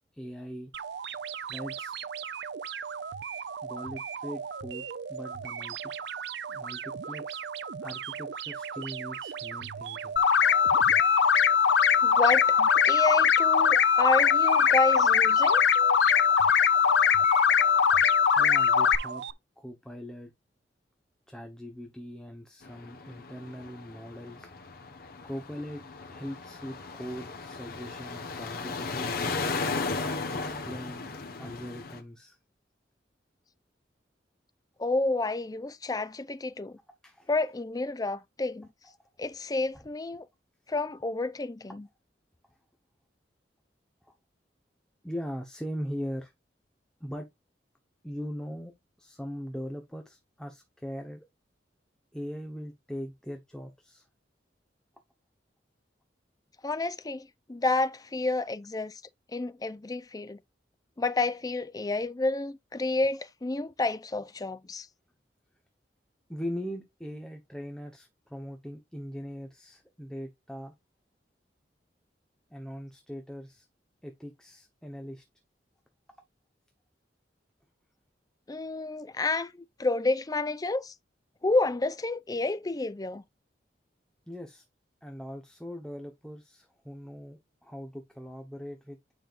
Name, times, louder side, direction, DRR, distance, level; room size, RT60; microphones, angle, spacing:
voice 1, 0.1-0.7 1.5-2.0 3.6-5.9 6.5-7.4 7.8-10.2 18.4-19.2 19.6-20.3 21.3-24.5 25.2-25.8 26.1-29.6 30.3-32.4 37.0-37.3 39.7-39.8 44.1-44.2 45.0-46.3 47.0-47.3 48.0-48.7 49.0-51.3 52.1-54.1 66.3-70.7 72.5-73.7 74.0-75.2 84.3-84.6 85.0-89.0, equal, 5° left, 1.1 m, -40 dB
sound 1, 0.7-19.3, right 7 dB, 65° right, 0.5 m, -38 dB
sound 2, 10.2-19.0, left 7 dB, 75° left, 0.6 m, -21 dB
voice 2, 12.0-15.6 34.8-36.8 37.3-38.7 39.2-40.2 40.7-41.9 56.6-58.9 59.3-60.4 61.0-64.9 78.5-80.9 81.4-83.2, left 2 dB, 20° left, 0.5 m, -30 dB
sound 3, 22.6-32.0, left 4 dB, 55° left, 1.2 m, -36 dB
9.4 x 5.5 x 2.5 m
head